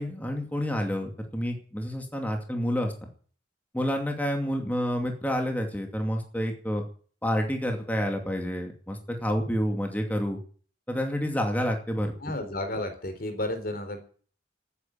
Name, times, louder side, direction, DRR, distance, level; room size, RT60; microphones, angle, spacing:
voice 1, 0.0-2.9 3.7-6.8 7.2-10.4 10.9-12.1, equal, 10° left, 3 dB, 2.5 m, -29 dB
voice 2, 12.2-14.0, left 1 dB, 55° left, 8 dB, 3.8 m, -32 dB
13.5 x 9.8 x 8.7 m, 0.43 s
head